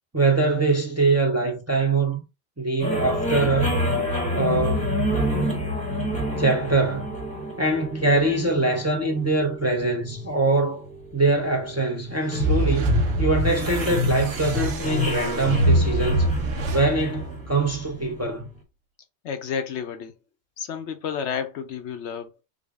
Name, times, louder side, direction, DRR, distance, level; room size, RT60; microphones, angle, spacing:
voice 1, 0.1-2.2 2.6-3.8 4.3-4.9 6.4-7.1 7.6-10.9 11.1-16.3 16.7-18.5, right 3 dB, 20° right, 0.5 m, -23 dB
sound 1, 2.8-18.2, equal, 5° left, 0.9 m, -26 dB
sound 2, 12.1-18.4, right 4 dB, 90° right, 0.9 m, -36 dB
voice 2, 19.2-20.1 20.6-22.3, left 7 dB, 85° left, 1.0 m, -31 dB
3.7 x 2.1 x 3.5 m
omnidirectional pair, 1.1 m